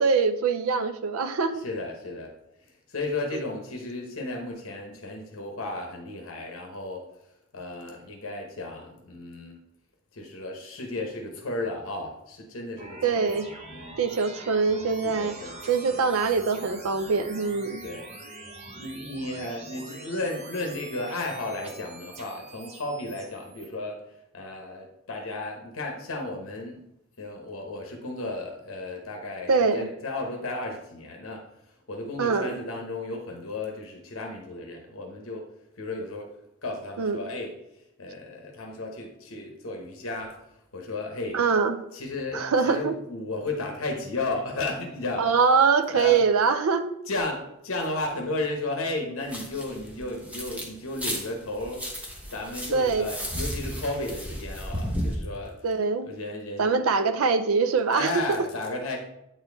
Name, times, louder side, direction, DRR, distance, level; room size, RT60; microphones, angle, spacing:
voice 1, 0.0-1.6 13.0-13.5 14.0-15.4 15.7-17.9 29.5-29.9 32.2-32.6 37.0-37.2 41.3-41.8 42.3-42.9 45.2-47.0 52.7-53.1 55.6-56.1 56.6-58.4, right 5 dB, 75° right, 0.5 m, -23 dB
voice 2, 1.6-2.3 2.7-7.0 7.5-9.6 10.1-13.4 13.7-14.0 15.0-15.6 15.9-16.0 17.8-18.1 18.7-24.0 24.3-26.8 27.2-31.5 31.9-35.5 35.8-36.3 36.6-37.6 38.0-40.4 40.7-41.4 41.9-45.3 45.9-46.2 47.1-55.6 56.0-56.9 57.9-59.0, left 2 dB, 70° left, 1.1 m, -34 dB
sound 1, 12.8-23.7, right 2 dB, 30° right, 0.8 m, -44 dB
sound 2, 49.2-50.7 50.9-55.2, equal, 5° right, 1.1 m, -34 dB
8.8 x 4.4 x 3.4 m
head